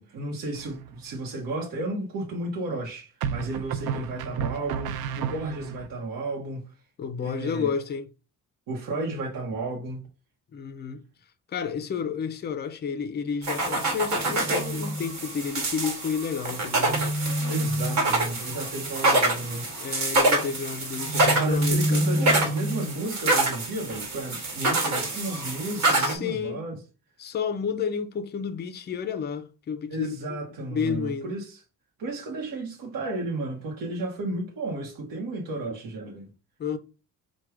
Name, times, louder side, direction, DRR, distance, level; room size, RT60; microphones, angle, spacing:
voice 1, 0.0-6.7 7.2-7.7 8.7-10.0 17.5-19.7 21.4-26.8 29.9-31.6 32.0-36.3, right 2 dB, 65° right, 0.9 m, -33 dB
sound 1, 0.5-1.1 3.2-5.9, right 8 dB, 85° right, 0.5 m, -32 dB
voice 2, 7.0-8.1 10.5-11.0 11.5-17.1 19.8-22.0 25.8-26.6 27.2-31.3 36.6-36.8, left 6 dB, 30° left, 0.4 m, -31 dB
sound 2, 13.4-26.1, right 2 dB, 50° right, 1.4 m, -25 dB
4.5 x 2.2 x 4.7 m
cardioid pair, 170°, 36 cm